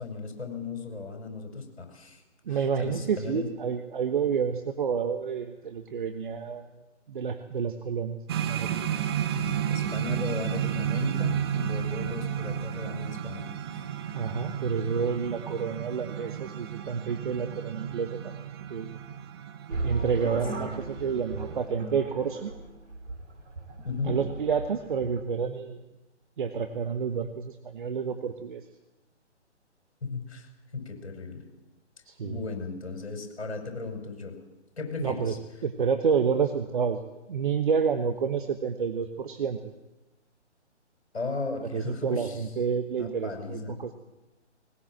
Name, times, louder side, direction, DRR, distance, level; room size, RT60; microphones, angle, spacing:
voice 1, 0.0-2.2 2.5-3.5 9.3-13.5 23.8-24.2 30.0-31.4 32.2-34.4 34.8-35.4 41.1-42.4 42.9-43.8, left 4 dB, 65° left, 4 dB, 5.8 m, -36 dB
voice 2, 2.5-6.7 7.1-8.7 14.1-18.9 19.8-22.5 24.0-25.8 26.4-28.6 32.1-32.4 35.0-39.6 41.7-43.9, right 6 dB, 45° right, 7 dB, 1.3 m, -29 dB
sound 1, 8.3-21.6, right 9 dB, 20° right, 0.9 m, -32 dB
sound 2, 19.7-25.2, right 3 dB, 75° right, 3.4 m, -36 dB
20.0 x 20.0 x 7.6 m, 1.0 s
figure-of-eight pair, 145°, 36 cm